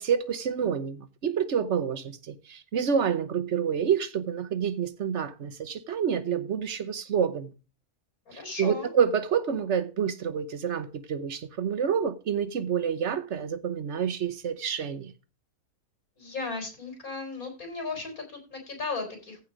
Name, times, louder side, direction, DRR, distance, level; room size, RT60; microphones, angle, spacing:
voice 1, 0.0-7.5 8.3-15.1, right 7 dB, 60° right, 1.2 m, -28 dB
voice 2, 8.3-8.9 16.2-19.4, left 3 dB, 85° left, 4.7 m, -35 dB
15.5 x 5.4 x 5.1 m
omnidirectional pair, 1.5 m